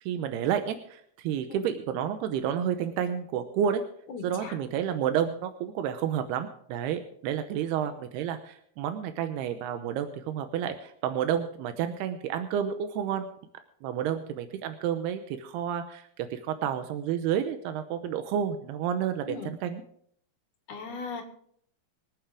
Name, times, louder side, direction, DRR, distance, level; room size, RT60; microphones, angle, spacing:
voice 1, 0.0-3.8 4.2-13.3 13.8-19.8, right 9 dB, 90° right, 8 dB, 2.9 m, -30 dB
voice 2, 4.1-4.6 7.8-7.9 19.2-19.6 20.7-21.2, left 4 dB, 55° left, 4 dB, 3.3 m, -38 dB
25.5 x 9.2 x 3.6 m, 0.65 s
omnidirectional pair, 4.5 m